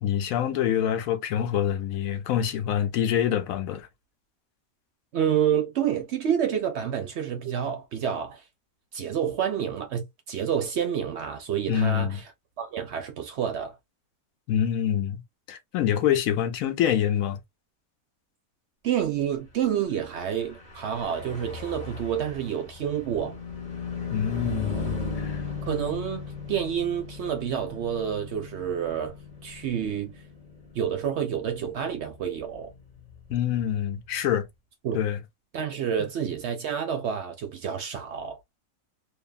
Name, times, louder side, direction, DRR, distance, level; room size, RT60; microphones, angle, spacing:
voice 1, 0.0-3.9 11.7-12.2 14.5-15.2 15.5-17.4 24.1-25.4 33.3-34.5 34.9-35.2, left 10 dB, 75° left, 1.0 m, -26 dB
voice 2, 5.1-8.4 8.9-12.3 12.6-13.8 18.8-23.4 25.7-29.1 29.4-30.1 30.7-32.7 34.8-35.0 35.5-38.4, right 8 dB, 60° right, 0.8 m, -28 dB
Car passing by / Truck, 20.3-34.0, left 4 dB, 35° left, 0.9 m, -37 dB
2.7 x 2.4 x 2.2 m
omnidirectional pair, 1.5 m